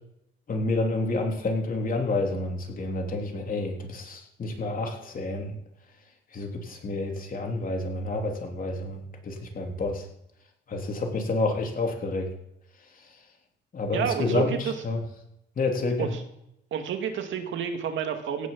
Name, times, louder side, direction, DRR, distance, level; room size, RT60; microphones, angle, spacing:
voice 1, 0.5-5.5 6.3-10.1 10.7-12.3 13.7-15.0 15.6-16.2, left 2 dB, 45° left, 2 dB, 3.4 m, -29 dB
voice 2, 13.9-14.7 16.0-16.2 16.7-18.5, right 8 dB, 75° right, 6 dB, 2.2 m, -29 dB
16.5 x 6.3 x 7.4 m, 0.81 s
cardioid pair, 90°, 20 cm